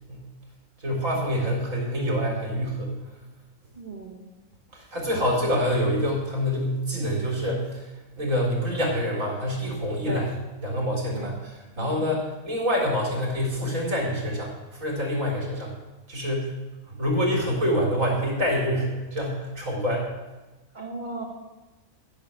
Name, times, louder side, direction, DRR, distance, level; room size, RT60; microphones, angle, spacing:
voice 1, 0.8-3.0 4.7-7.9 8.2-10.3 10.6-11.5 11.8-15.8 16.1-16.6 17.0-20.1, equal, 65° right, -2 dB, 4.0 m, -26 dB
voice 2, 3.7-4.3 10.0-10.3 11.1-11.4 11.8-12.0 20.7-21.2, right 3 dB, 30° right, 0 dB, 2.1 m, -37 dB
14.0 x 6.4 x 7.0 m, 1.1 s
omnidirectional pair, 1.5 m